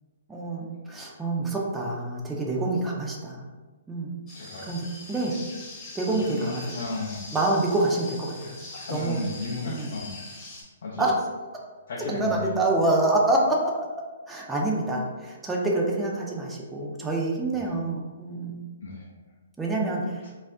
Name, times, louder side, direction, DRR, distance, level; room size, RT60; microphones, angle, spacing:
voice 1, 0.3-3.4 3.9-4.1 4.6-5.3 6.0-6.8 7.3-8.6 8.9-9.3 9.7-9.9 11.0-11.2 12.1-13.9 14.3-18.6 19.6-20.2, right 2 dB, 10° right, -2 dB, 0.4 m, -26 dB
voice 2, 4.3-4.7 6.3-7.2 8.8-10.2 10.8-11.1 11.9-12.5 17.5-17.6 18.8-19.0, left 3 dB, 65° left, -5 dB, 0.5 m, -34 dB
sound 1, 4.3-10.6, left 2 dB, 20° left, 0.9 m, -42 dB
2.4 x 2.0 x 3.4 m, 1.3 s
hypercardioid pair, 135°, 0 cm